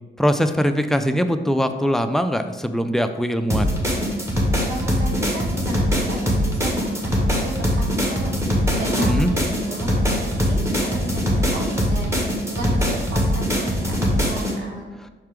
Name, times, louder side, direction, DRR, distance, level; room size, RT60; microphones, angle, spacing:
voice 1, 0.2-3.7 9.0-9.3, equal, ahead, 7 dB, 0.4 m, -21 dB
sound 1, 3.5-14.5, equal, 15° right, 1.5 m, -22 dB
voice 2, 4.7-14.9, right 1 dB, 75° right, 0 dB, 1.1 m, -34 dB
5.7 x 4.4 x 3.7 m, 1.3 s
cardioid pair, 90°, 20 cm